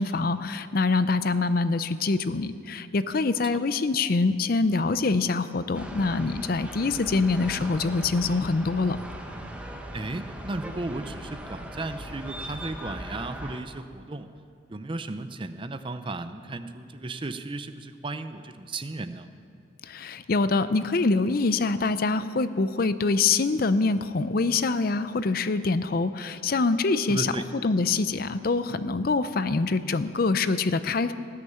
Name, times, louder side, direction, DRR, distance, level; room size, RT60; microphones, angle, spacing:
voice 1, 0.0-9.0 19.9-27.3 27.6-31.1, left 3 dB, 50° left, 13 dB, 0.5 m, -25 dB
sound 1, 5.7-13.6, equal, 5° right, 0.9 m, -39 dB
voice 2, 9.9-14.3 14.7-19.3 27.1-27.5, right 2 dB, 25° right, 10 dB, 0.5 m, -35 dB
19.0 x 6.6 x 8.6 m, 2.6 s
head